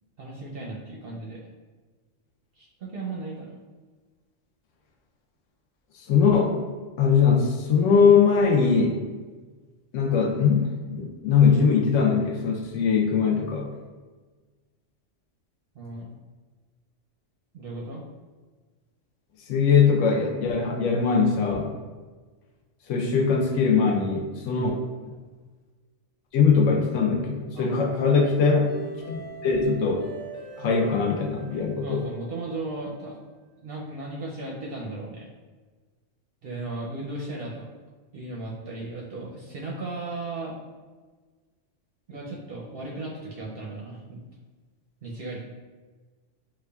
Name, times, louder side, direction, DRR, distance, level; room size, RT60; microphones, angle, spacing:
voice 1, 0.2-1.4 2.6-3.6 15.7-16.1 17.5-18.0 24.5-24.7 27.5-28.2 31.8-33.2 33.6-35.3 36.4-37.7 38.1-40.6 42.1-44.2 45.0-45.4, right 2 dB, 60° right, -3 dB, 0.6 m, -36 dB
voice 2, 5.9-6.6 7.0-9.1 9.9-13.7 19.5-21.7 22.9-24.8 26.3-28.7 29.1-30.1 30.6-32.0, left 5 dB, 80° left, 1 dB, 0.9 m, -21 dB
sound 1, 27.7-32.7, right 2 dB, 45° left, 0.9 m, -42 dB
5.0 x 2.3 x 2.3 m, 1.4 s
omnidirectional pair, 1.3 m